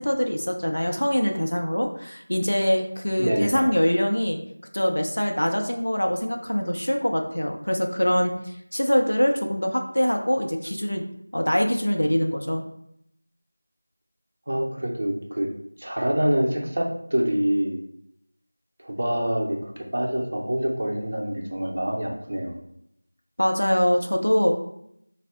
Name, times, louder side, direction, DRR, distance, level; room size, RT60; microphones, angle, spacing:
voice 1, 0.0-4.4 4.7-11.1 11.3-12.6 23.4-24.6, equal, 80° left, 3 dB, 0.5 m, -23 dB
voice 2, 3.2-3.7 14.5-15.5 15.8-17.8 18.8-19.6 19.9-22.6, equal, 45° right, -1 dB, 0.6 m, -26 dB
2.6 x 2.0 x 3.4 m, 0.75 s
figure-of-eight pair, 175°, 0 cm